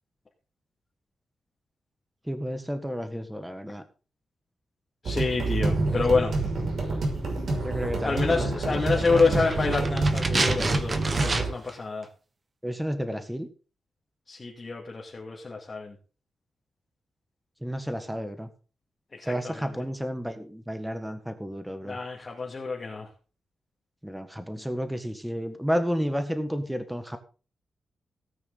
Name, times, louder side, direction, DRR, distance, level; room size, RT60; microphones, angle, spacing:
voice 1, 2.3-3.8 5.9-6.0 7.6-8.4 9.0-9.4 12.6-13.5 17.6-18.5 19.2-22.0 24.0-27.2, equal, 5° right, 8 dB, 1.5 m, -31 dB
voice 2, 5.0-6.3 8.0-12.1 14.3-16.0 19.1-19.7 21.8-23.1, left 4 dB, 25° left, -2 dB, 2.3 m, -28 dB
sound 1, 5.1-11.5, right 2 dB, 55° right, 6.0 m, -27 dB
sound 2, 8.9-11.8 12.0-12.1, right 3 dB, 25° right, 1.4 m, -29 dB
18.0 x 9.3 x 4.0 m, 0.36 s
wide cardioid pair, 175°, 0 cm